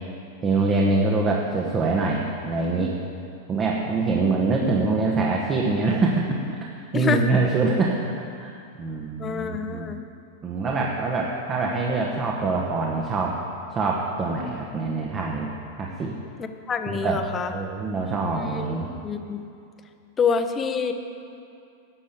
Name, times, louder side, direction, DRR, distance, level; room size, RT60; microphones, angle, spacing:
voice 1, 0.4-2.9 3.5-6.4 6.8-9.9 10.4-13.4 13.7-15.5 15.8-16.2 16.9-17.2 17.5-18.9, right 3 dB, 30° right, -1 dB, 1.3 m, -24 dB
voice 2, 6.9-7.3 9.2-10.0 16.4-17.5 18.4-18.7 19.0-19.4 20.2-20.9, left 6 dB, 25° left, 7 dB, 0.9 m, -26 dB
11.5 x 6.4 x 8.5 m, 2.5 s
hypercardioid pair, 120°, 0 cm